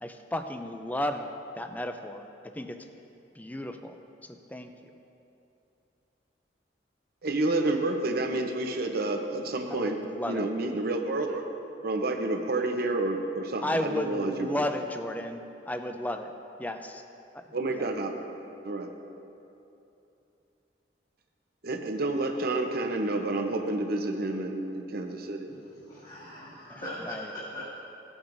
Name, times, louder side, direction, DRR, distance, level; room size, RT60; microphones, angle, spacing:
voice 1, 0.0-2.9 3.4-4.9 9.7-10.5 13.6-16.3 16.6-17.0 17.3-17.4 17.7-17.9 26.7-27.3, left 1 dB, 10° left, 7 dB, 0.4 m, -34 dB
voice 2, 7.2-10.0 10.3-11.4 11.8-14.6 17.5-18.1 18.6-18.9 21.6-25.5, right 2 dB, 60° right, 4 dB, 0.8 m, -29 dB
voice 3, 25.8-27.6, left 1 dB, 45° left, -12 dB, 2.4 m, -40 dB
16.5 x 8.7 x 2.6 m, 2.8 s
head